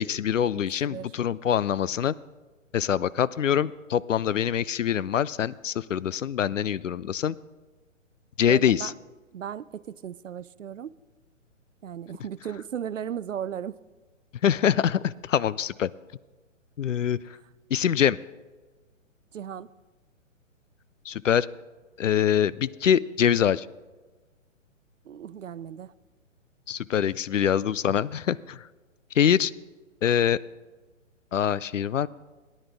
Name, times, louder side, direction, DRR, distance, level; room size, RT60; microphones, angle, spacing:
voice 1, 0.0-2.1 2.7-7.4 8.4-8.9 14.4-15.9 16.8-17.2 17.7-18.2 21.1-21.5 22.0-23.7 26.7-28.7 29.1-29.5 30.0-30.4 31.3-32.1, left 9 dB, 75° left, 19 dB, 0.5 m, -24 dB
voice 2, 0.5-1.1 8.5-8.9 9.3-10.9 11.8-13.8 19.3-19.7 25.1-25.9, right 9 dB, 70° right, 19 dB, 0.5 m, -36 dB
17.5 x 10.5 x 3.5 m, 1.3 s
figure-of-eight pair, 125°, 39 cm